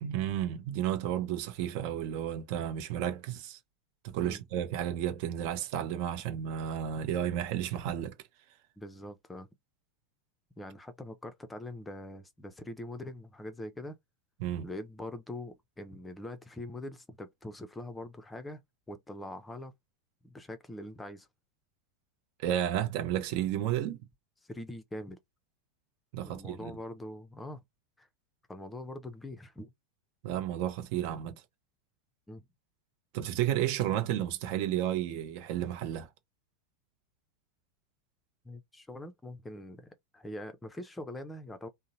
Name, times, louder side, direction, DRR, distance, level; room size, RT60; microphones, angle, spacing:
voice 1, 0.0-3.6 4.0-8.1 14.4-14.7 22.4-24.0 26.1-26.7 30.2-31.4 33.1-36.1, right 11 dB, 55° right, 0.6 m, -32 dB
voice 2, 8.8-9.5 10.6-14.0 14.6-18.6 18.9-19.7 20.2-21.3 24.5-25.2 26.2-27.6 28.0-28.1 28.5-29.7 32.3-32.4 38.4-41.7, left 1 dB, 10° left, 0.5 m, -43 dB
2.7 x 2.0 x 2.6 m
hypercardioid pair, 90°, 0 cm